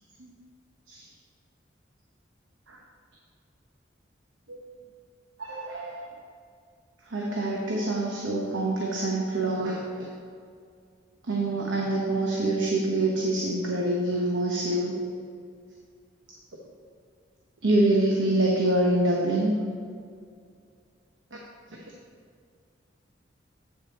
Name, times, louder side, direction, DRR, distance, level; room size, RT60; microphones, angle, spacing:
voice 1, 5.4-6.1 7.0-10.1 11.2-15.0 17.6-19.6 21.3-21.4 21.7-21.8, right 2 dB, 90° right, -1 dB, 1.0 m, -26 dB
8.3 x 6.5 x 4.1 m, 2.2 s
head